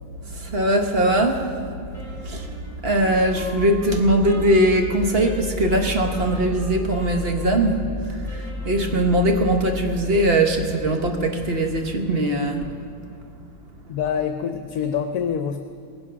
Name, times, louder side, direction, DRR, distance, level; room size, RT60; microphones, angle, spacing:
voice 1, 0.2-12.7, right 1 dB, 40° right, 4 dB, 1.2 m, -21 dB
Wind instrument woodwind instrument, 1.9-9.4, left 1 dB, ahead, 4.5 m, -41 dB
voice 2, 13.9-15.6, left 7 dB, 70° left, 7 dB, 1.2 m, -26 dB
18.5 x 10.5 x 6.2 m, 2.2 s
omnidirectional pair, 1.8 m